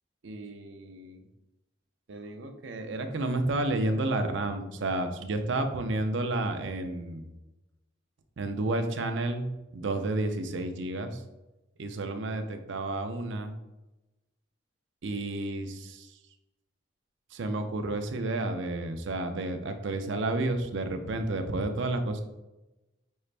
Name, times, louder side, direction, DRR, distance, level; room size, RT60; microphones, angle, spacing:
voice 1, 0.2-1.2 2.1-7.3 8.4-9.5 9.7-11.2 11.8-13.5 15.0-16.2 17.3-22.2, right 2 dB, 70° right, 7 dB, 0.5 m, -31 dB
5.3 x 3.2 x 2.5 m, 1.0 s
head